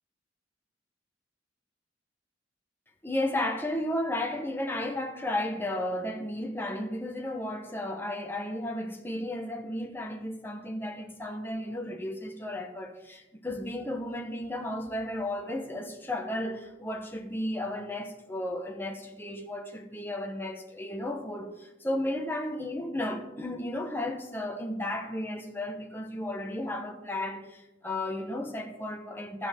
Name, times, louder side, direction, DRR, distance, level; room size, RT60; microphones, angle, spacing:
voice 1, 3.0-29.5, left 1 dB, 10° left, 0.9 m, -34 dB
15.0 x 6.0 x 3.5 m
head